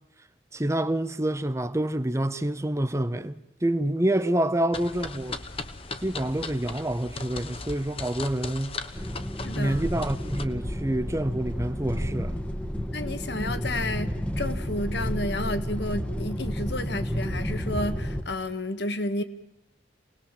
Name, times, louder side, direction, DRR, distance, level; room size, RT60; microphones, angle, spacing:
voice 1, 0.5-5.4 6.0-8.8 9.6-12.4, right 1 dB, 15° right, 0.8 m, -27 dB
sound 1, 4.7-10.4, left 3 dB, 30° left, 1.1 m, -37 dB
sound 2, 8.9-18.2, equal, 5° left, 1.2 m, -31 dB
voice 2, 9.4-9.9 12.9-19.2, left 1 dB, 60° left, 1.6 m, -31 dB
28.0 x 19.0 x 7.4 m
head